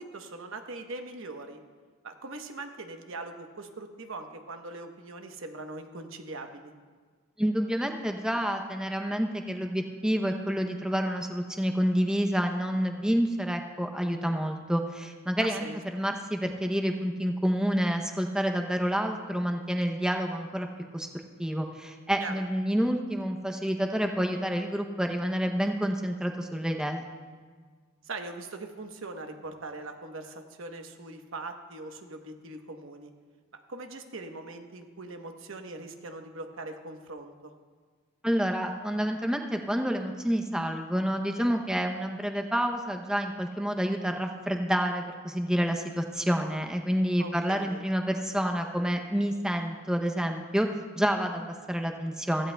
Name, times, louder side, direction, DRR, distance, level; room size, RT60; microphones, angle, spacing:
voice 1, 0.0-1.6 2.0-6.7 15.4-15.8 22.2-22.3 28.0-33.1 33.7-37.5 47.2-47.8, right 2 dB, 70° right, 5 dB, 1.0 m, -41 dB
voice 2, 7.4-15.6 15.9-20.7 20.9-27.0 38.2-50.7 51.0-52.5, equal, 5° right, 3 dB, 0.6 m, -28 dB
16.5 x 15.0 x 2.2 m, 1.5 s
head